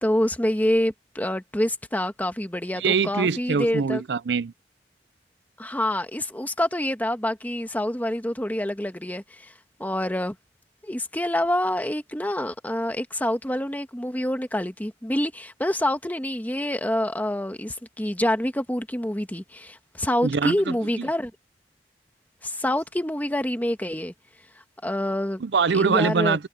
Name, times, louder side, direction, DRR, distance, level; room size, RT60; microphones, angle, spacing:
voice 1, 0.0-4.0 5.6-9.5 9.8-10.3 10.8-21.3 22.4-24.1 24.8-25.4 25.7-26.4, left 1 dB, 10° left, 1.4 m, -26 dB
voice 2, 2.7-4.5 20.2-21.1 25.4-26.5, right 5 dB, 70° right, 0.6 m, -24 dB
head